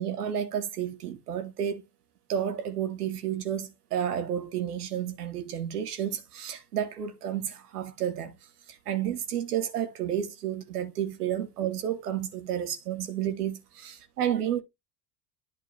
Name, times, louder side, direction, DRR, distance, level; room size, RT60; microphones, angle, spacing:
voice 1, 0.0-1.8 2.3-14.6, right 10 dB, 70° right, 1.2 m, -31 dB
10.5 x 3.6 x 3.3 m
figure-of-eight pair, 65°, 48 cm